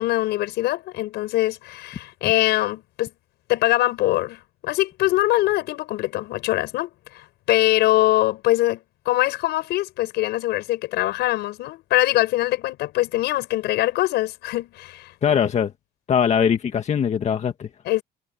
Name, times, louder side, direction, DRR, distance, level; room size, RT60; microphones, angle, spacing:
voice 1, 0.0-3.1 3.5-8.8 9.1-15.4 17.8-18.0, left 16 dB, 85° left, 5.7 m, -23 dB
voice 2, 15.2-15.7 16.1-17.7, left 8 dB, 45° left, 1.7 m, -21 dB
cardioid pair, 110°, 17 cm